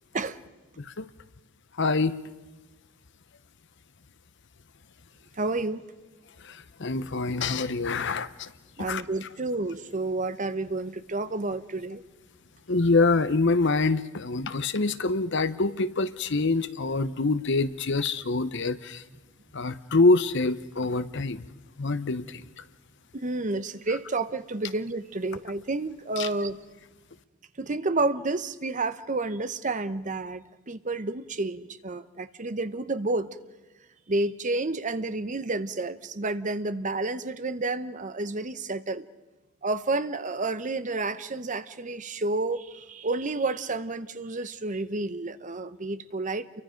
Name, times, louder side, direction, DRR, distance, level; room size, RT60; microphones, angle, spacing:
voice 1, 1.8-2.1 6.8-8.5 8.9-9.0 12.7-19.0 19.5-21.4 21.8-22.4 26.2-26.3, left 3 dB, 55° left, 13 dB, 0.9 m, -25 dB
voice 2, 5.4-5.8 8.8-12.0 23.1-26.6 27.6-33.3 34.1-39.1 39.6-46.6, right 2 dB, 35° right, 13 dB, 0.8 m, -30 dB
29.0 x 23.5 x 5.2 m, 1.2 s
head